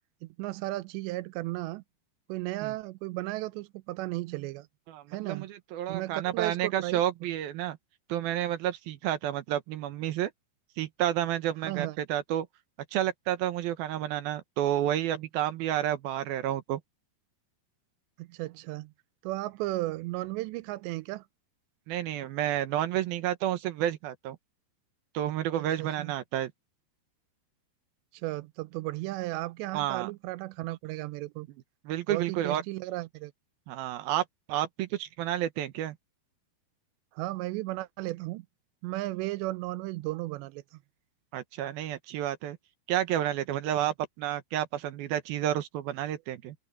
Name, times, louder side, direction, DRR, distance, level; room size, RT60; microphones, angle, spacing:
voice 1, 0.2-1.8 2.3-4.7 5.1-5.5 5.9-7.0 11.6-12.0 18.2-18.9 19.2-21.2 25.8-26.1 28.1-31.5 32.1-33.3 37.2-38.5 38.8-40.8 43.8-43.9, right 19 dB, 90° right, 2.9 m, -35 dB
voice 2, 4.9-7.8 8.1-10.3 10.8-12.5 12.9-16.8 21.9-24.4 25.1-26.5 29.7-30.1 31.9-32.6 33.7-36.0 41.3-42.6 42.9-46.6, right 12 dB, 70° right, 2.6 m, -30 dB
open air
omnidirectional pair, 5.0 m